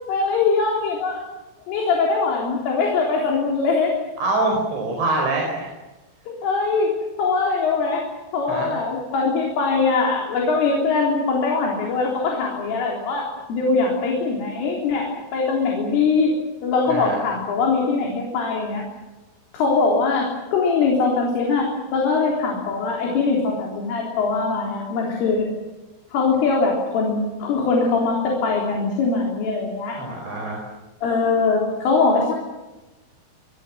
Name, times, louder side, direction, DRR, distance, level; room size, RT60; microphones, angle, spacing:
voice 1, 0.1-1.1 1.7-3.9 6.4-6.9 7.2-8.0 8.3-16.3 16.6-18.8 19.5-25.5 26.1-30.0 31.0-32.4, left 4 dB, 75° left, -1 dB, 6.3 m, -22 dB
voice 2, 4.2-5.7 8.5-8.7 16.9-17.2 29.9-30.6, right 2 dB, 65° right, 0 dB, 7.1 m, -24 dB
27.0 x 23.0 x 7.5 m, 1.1 s
omnidirectional pair, 5.8 m